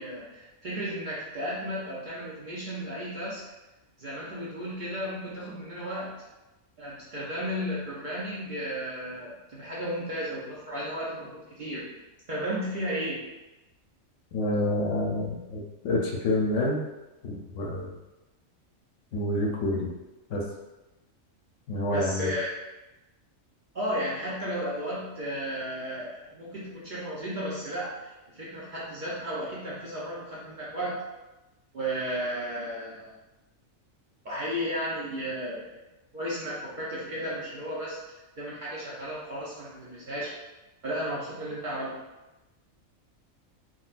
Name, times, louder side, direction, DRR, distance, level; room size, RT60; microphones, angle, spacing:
voice 1, 0.0-3.4 4.0-6.1 6.8-11.9 12.3-13.2 21.9-22.5 23.7-31.0 31.7-33.1 34.2-35.7 36.1-38.0 38.4-40.3 40.8-41.9, equal, 50° right, -8 dB, 0.6 m, -34 dB
voice 2, 14.3-16.8 17.2-17.9 19.1-19.9 20.3-20.4 21.7-22.3, left 1 dB, 70° left, -2 dB, 0.9 m, -28 dB
3.8 x 2.2 x 2.4 m, 1.0 s
omnidirectional pair, 1.3 m